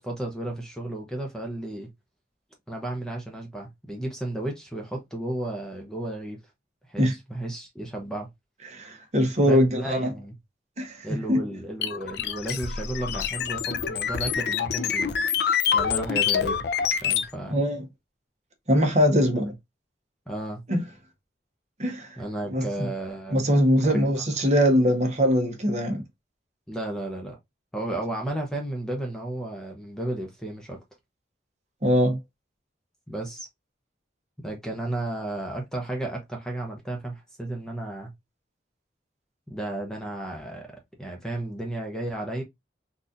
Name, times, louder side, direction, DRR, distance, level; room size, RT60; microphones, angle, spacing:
voice 1, 0.0-1.9 2.7-6.4 6.9-8.3 9.4-10.3 11.0-15.1 15.7-16.6 17.0-17.6 20.3-20.6 22.2-23.5 23.8-24.2 26.7-27.4 27.7-30.8 33.1-33.5 34.4-38.1 39.5-40.7 41.0-42.4, right 1 dB, 5° left, 0.7 m, -33 dB
voice 2, 8.7-10.1 10.8-11.4 17.5-17.8 18.7-19.5 20.7-20.8 21.8-22.1 22.5-22.9 23.3-26.0 31.8-32.2, equal, 35° right, 0.9 m, -22 dB
sound 1, 11.8-17.3, left 7 dB, 60° left, 0.4 m, -26 dB
4.0 x 2.4 x 2.6 m
head